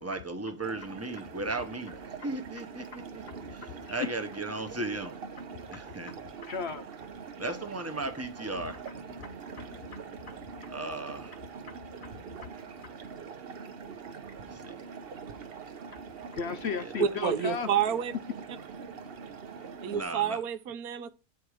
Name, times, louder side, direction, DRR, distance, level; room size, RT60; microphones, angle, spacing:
voice 1, 0.0-3.2 3.5-5.1 5.7-6.1 7.4-8.8 10.7-11.4 14.3-14.8 16.8-17.1 19.9-20.4, right 2 dB, 15° right, 0.8 m, -36 dB
sound 1, 0.6-20.0, right 5 dB, 50° right, 0.9 m, -44 dB
voice 2, 3.6-4.1 6.1-6.2 6.4-6.9 9.2-10.7 16.3-17.7, left 6 dB, 65° left, 0.7 m, -36 dB
voice 3, 17.0-18.1 19.8-21.1, right 8 dB, 90° right, 1.2 m, -29 dB
9.1 x 4.6 x 4.9 m
omnidirectional pair, 1.5 m